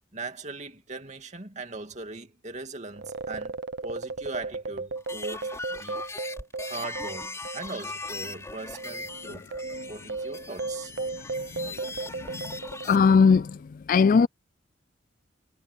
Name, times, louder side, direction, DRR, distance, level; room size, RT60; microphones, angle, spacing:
voice 1, 0.1-3.5 3.8-6.0 6.6-9.5 9.9-10.9, right 3 dB, 35° right, 2.6 m, -39 dB
sound 1, 2.9-7.8 8.0-8.2 8.8-13.5, right 3 dB, 60° right, 1.0 m, -35 dB
sound 2, 5.0-13.0, left 3 dB, 15° left, 4.3 m, -39 dB
voice 2, 12.8-13.6 13.9-14.3, left 5 dB, 45° left, 0.3 m, -20 dB
head